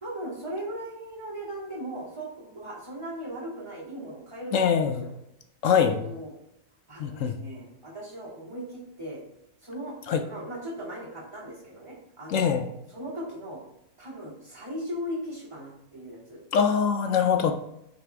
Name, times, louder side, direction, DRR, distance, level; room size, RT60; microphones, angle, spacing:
voice 1, 0.0-5.1 5.9-6.3 6.9-9.2 9.6-10.0 10.2-13.6 14.0-16.4, right 1 dB, 20° right, -7 dB, 2.5 m, -38 dB
voice 2, 4.5-5.0 5.6-5.9 7.0-7.4 10.1-10.2 12.3-12.7 16.5-17.5, left 7 dB, 65° left, 6 dB, 0.8 m, -23 dB
8.8 x 4.2 x 3.4 m, 0.84 s
omnidirectional pair, 1.7 m